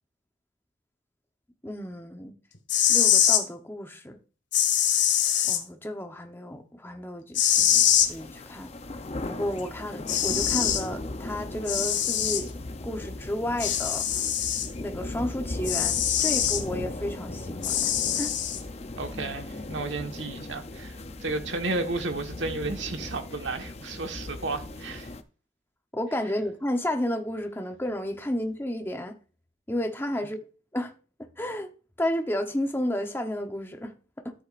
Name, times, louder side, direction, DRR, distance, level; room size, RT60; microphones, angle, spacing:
voice 1, 1.6-2.3 2.9-4.2 5.4-8.7 9.3-12.5 12.8-14.3 14.8-18.3 25.9-29.1 29.7-30.4 30.7-30.9 31.4-31.7 32.0-34.3, left 1 dB, 10° left, 0.9 m, -32 dB
sound 1, 2.5-3.4 4.5-5.6 7.3-8.1 9.6-9.7 10.1-10.8 11.7-12.4 13.6-14.7 15.6-16.6 17.6-18.6, left 10 dB, 75° left, 1.6 m, -23 dB
sound 2, 7.5-25.2, left 2 dB, 35° left, 0.6 m, -38 dB
voice 2, 19.0-25.1, right 3 dB, 75° right, 1.4 m, -33 dB
13.0 x 8.1 x 2.5 m
head